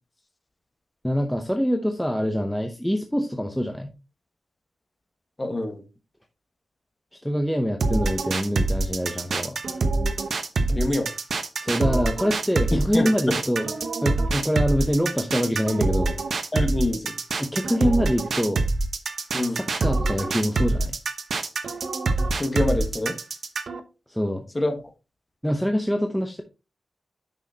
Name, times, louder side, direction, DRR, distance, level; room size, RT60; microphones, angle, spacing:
voice 1, 1.0-3.9 7.2-9.6 11.6-13.7 14.0-16.2 17.4-18.6 19.5-20.9 24.1-24.4 25.4-26.4, equal, ahead, 3 dB, 0.8 m, -25 dB
voice 2, 5.4-5.8 10.7-11.1 12.9-13.4 16.5-17.1 19.3-19.6 22.4-23.2 24.5-24.7, left 1 dB, 20° left, 5 dB, 1.4 m, -25 dB
sound 1, 7.8-23.8, right 3 dB, 55° right, 0.9 m, -25 dB
9.5 x 6.2 x 2.8 m, 0.29 s
wide cardioid pair, 160°, 0 cm